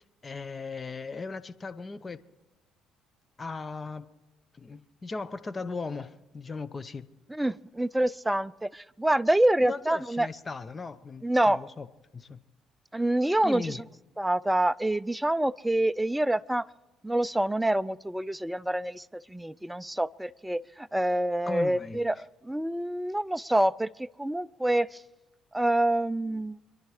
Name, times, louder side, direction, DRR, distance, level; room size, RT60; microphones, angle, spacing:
voice 1, 0.2-2.2 3.4-4.1 4.5-7.1 9.6-11.9 12.1-12.4 13.4-13.8 21.5-22.0, left 4 dB, 30° left, 0.9 m, -37 dB
voice 2, 7.3-10.3 11.2-11.6 12.9-13.8 14.2-16.7 17.0-25.0 25.5-26.6, right 1 dB, 5° right, 0.4 m, -27 dB
26.5 x 11.0 x 4.9 m
supercardioid pair, 70°, 0 cm